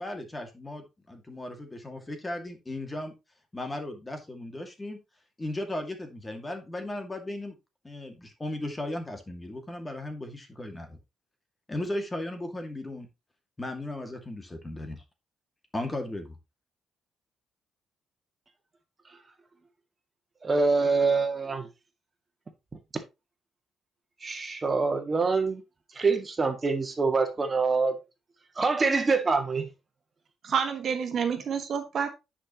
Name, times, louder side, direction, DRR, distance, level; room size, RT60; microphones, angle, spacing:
voice 1, 0.0-3.1 3.5-5.0 5.4-7.6 7.8-11.0 11.7-13.1 13.6-15.0 15.7-16.4, left 1 dB, 20° left, 2.3 m, -36 dB
voice 2, 20.4-21.7 24.2-25.6 25.9-28.0 28.6-29.7, right 4 dB, 30° right, 2.0 m, -25 dB
voice 3, 30.4-32.1, right 7 dB, 55° right, 1.7 m, -28 dB
10.0 x 5.8 x 3.1 m
cardioid pair, 90°, 0 cm